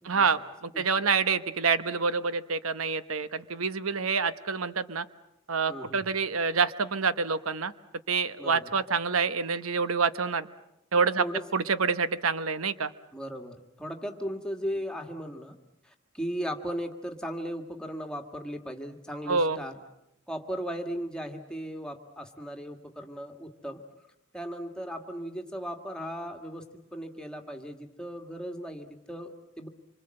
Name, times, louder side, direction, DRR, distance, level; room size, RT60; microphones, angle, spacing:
voice 1, 0.0-5.0 5.5-7.7 8.1-10.5 10.9-11.2 11.5-12.9 19.3-19.6, right 5 dB, 85° right, 13 dB, 1.0 m, -27 dB
voice 2, 5.7-6.0 8.4-8.7 11.2-11.4 13.1-15.6 15.8-19.7 20.3-23.8 24.3-26.6 26.9-29.7, equal, 5° left, 4 dB, 1.8 m, -37 dB
26.5 x 25.0 x 7.7 m, 0.87 s
head